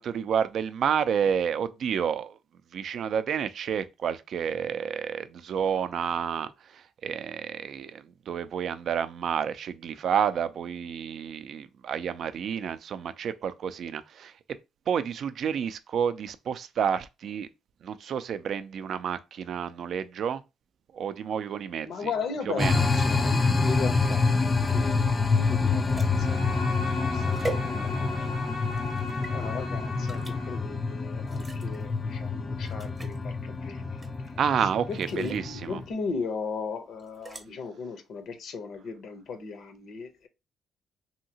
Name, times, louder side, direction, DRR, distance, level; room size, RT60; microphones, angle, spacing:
voice 1, 0.0-2.4 2.7-14.3 14.9-17.5 17.8-20.4 20.9-22.1 22.6-22.8 34.4-35.8, right 7 dB, 65° right, 0.3 m, -30 dB
voice 2, 21.8-28.7 29.3-40.3, left 5 dB, 70° left, 0.7 m, -37 dB
sound 1, 22.6-35.9, left 4 dB, 25° left, 0.4 m, -27 dB
sound 2, 24.5-28.3 28.7-29.3 30.1-30.4 31.2-31.8 32.3-32.4 32.6-33.2 34.0-34.4 34.9-35.5 37.0-37.4, right 2 dB, 25° right, 0.7 m, -41 dB
Bowed string instrument, 25.9-30.7, left 3 dB, 85° left, 1.2 m, -37 dB
2.8 x 2.7 x 2.7 m
cardioid pair, 90°, 0 cm